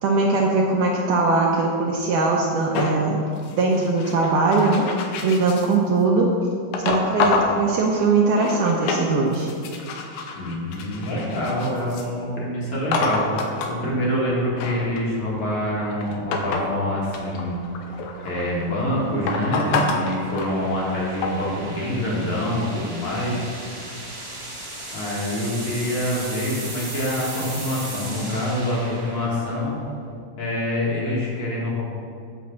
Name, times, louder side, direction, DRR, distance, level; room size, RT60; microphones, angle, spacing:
voice 1, 0.0-3.2 3.5-4.9 5.2-6.3 6.8-9.5, right 3 dB, 75° right, -1 dB, 2.0 m, -20 dB
sound 1, 2.7-5.8 6.7-7.6 8.1-9.1 9.3-12.1 12.9-13.8 14.3-16.7 17.0-18.6 19.3-20.9 21.2-21.5, left 4 dB, 80° left, 2.5 m, -27 dB
voice 2, 10.4-17.6 18.2-23.4 24.9-29.7 30.4-31.8, left 1 dB, 55° left, -5 dB, 2.6 m, -26 dB
sound 2, 14.5-30.2, right 1 dB, 20° right, 0.8 m, -38 dB
8.6 x 5.2 x 7.0 m, 2.4 s
omnidirectional pair, 4.3 m